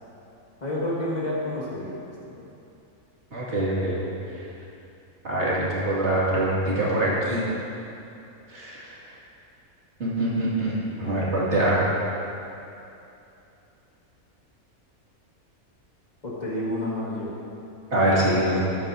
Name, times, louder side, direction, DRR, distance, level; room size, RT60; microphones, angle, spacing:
voice 1, 0.6-2.4 16.2-17.4, left 1 dB, 30° left, -6 dB, 2.0 m, -30 dB
voice 2, 3.3-4.0 5.2-7.4 8.5-9.0 10.0-11.9 17.9-18.7, right 1 dB, 50° right, -7 dB, 2.5 m, -24 dB
13.5 x 9.8 x 2.7 m, 2.8 s
omnidirectional pair, 1.5 m